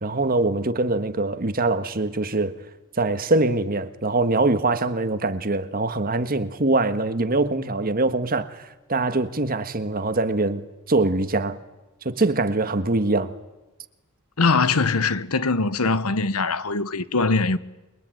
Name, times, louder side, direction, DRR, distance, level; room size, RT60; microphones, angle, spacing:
voice 1, 0.0-2.6 3.0-11.6 12.0-13.3, right 2 dB, 40° right, 1.5 m, -23 dB
voice 2, 14.4-17.6, left 4 dB, 85° left, 1.2 m, -22 dB
28.5 x 22.5 x 9.3 m
head